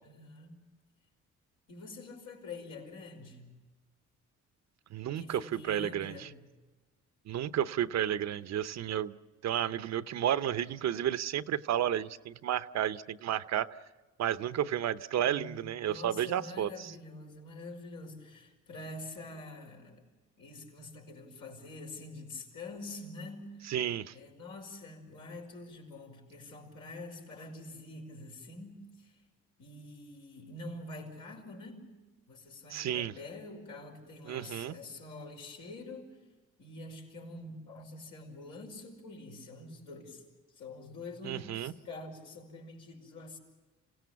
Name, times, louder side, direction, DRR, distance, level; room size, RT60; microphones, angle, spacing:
voice 1, 0.0-0.6 1.7-3.6 5.2-6.4 15.2-20.0 20.4-23.7 24.1-29.2 29.6-32.0 32.3-36.2 36.6-40.2 40.5-43.4, left 2 dB, 85° left, 5.2 m, -46 dB
voice 2, 4.9-6.3 7.3-9.2 9.4-13.7 14.2-16.9 23.7-24.1 32.7-33.1 34.3-34.7 41.2-41.7, right 10 dB, 60° right, 0.8 m, -32 dB
27.5 x 17.0 x 7.0 m
cardioid pair, 90°, 30 cm